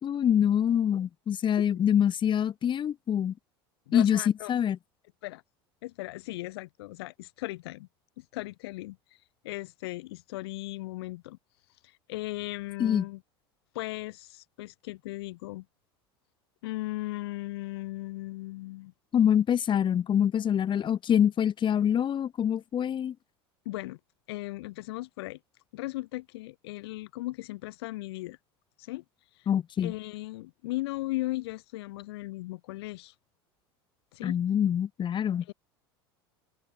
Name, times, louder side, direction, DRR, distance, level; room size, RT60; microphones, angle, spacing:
voice 1, 0.0-3.3 3.9-4.2 4.5-4.8 12.8-13.0 19.1-23.1 29.5-29.9 34.2-35.4, left 9 dB, 35° left, 3.9 m, -25 dB
voice 2, 3.9-4.5 5.2-5.4 5.8-7.9 8.2-9.0 9.4-11.4 11.8-13.2 13.7-15.6 16.6-18.9 23.6-24.0 24.3-25.4 25.7-28.4 28.8-29.0 29.3-29.5 29.8-33.1 34.1-34.4 35.5-35.6, left 19 dB, 75° left, 3.1 m, -37 dB
hypercardioid pair, 85°, 13 cm